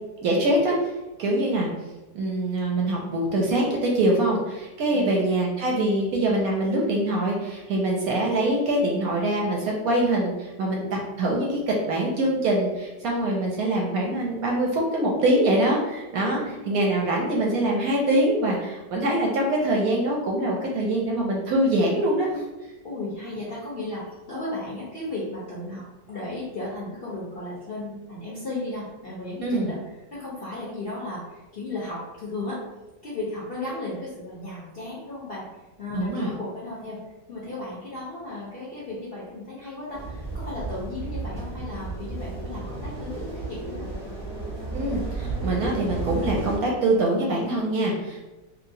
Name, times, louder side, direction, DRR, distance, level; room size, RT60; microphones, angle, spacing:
voice 1, 0.2-0.9 1.2-1.7 2.1-22.4 29.4-29.7 35.9-36.3 44.7-48.2, right 1 dB, 70° right, -1 dB, 0.9 m, -24 dB
voice 2, 4.9-5.2 16.4-16.9 22.8-29.8 30.1-32.6 33.0-35.5 35.8-37.0 37.3-43.9, left 2 dB, 55° left, -7 dB, 0.6 m, -35 dB
sound 1, 39.9-46.6, right 3 dB, 40° right, 0.5 m, -33 dB
3.0 x 2.4 x 2.6 m, 1.1 s
omnidirectional pair, 1.8 m